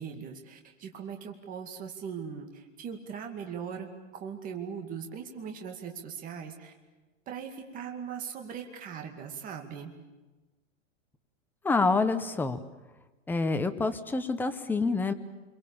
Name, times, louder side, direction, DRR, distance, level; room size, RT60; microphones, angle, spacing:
voice 1, 0.0-6.7 7.3-9.9, right 7 dB, 20° right, 4 dB, 2.3 m, -40 dB
voice 2, 11.6-12.6 13.3-15.1, left 3 dB, 5° left, 8 dB, 0.8 m, -27 dB
29.0 x 23.0 x 7.1 m, 1.2 s
supercardioid pair, 155°, 39 cm